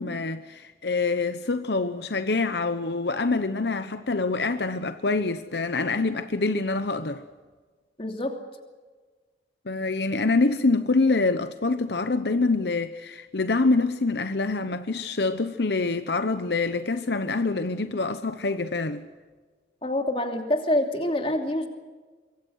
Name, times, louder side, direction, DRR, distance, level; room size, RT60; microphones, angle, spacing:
voice 1, 0.0-7.2 9.7-19.0, left 3 dB, 70° left, 1.0 m, -25 dB
voice 2, 8.0-8.4 19.8-21.7, left 1 dB, 30° left, 2.9 m, -26 dB
25.0 x 23.5 x 6.5 m
head